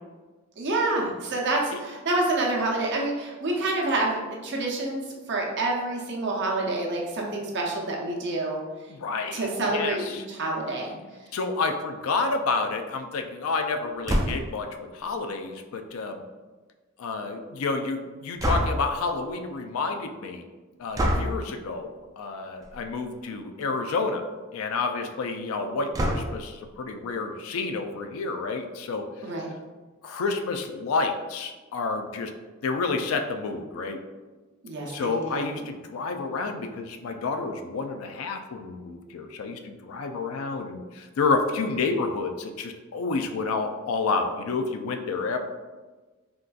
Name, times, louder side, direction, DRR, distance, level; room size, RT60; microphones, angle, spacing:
voice 1, 0.6-8.6 9.3-11.0 29.2-29.5 34.6-35.5, right 2 dB, 55° right, -2 dB, 0.6 m, -28 dB
voice 2, 8.9-10.2 11.3-14.7 14.9-16.2 17.0-20.4 20.8-24.3 24.5-29.1 30.0-32.3 32.6-34.0 34.8-45.4, left 4 dB, 70° left, 6 dB, 0.3 m, -29 dB
sound 1, 14.1-14.6 18.4-19.0 20.9-21.4 22.6-22.9 23.3-23.4 23.6-23.7 25.9-26.5, equal, 15° right, 0.3 m, -26 dB
3.7 x 2.4 x 2.2 m, 1.3 s
head